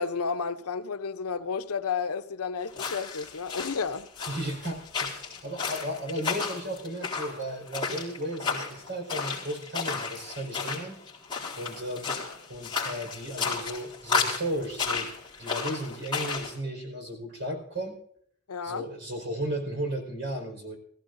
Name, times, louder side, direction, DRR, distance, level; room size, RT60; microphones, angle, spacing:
voice 1, 0.0-4.1 18.5-18.8, left 5 dB, 85° left, 0.8 m, -31 dB
sound 1, 2.7-16.5, left 5 dB, 20° left, 3.8 m, -33 dB
voice 2, 4.3-11.0 11.6-12.1 12.5-15.1 15.4-18.0 18.6-20.8, right 1 dB, 50° right, 4.9 m, -35 dB
21.5 x 15.0 x 2.6 m
head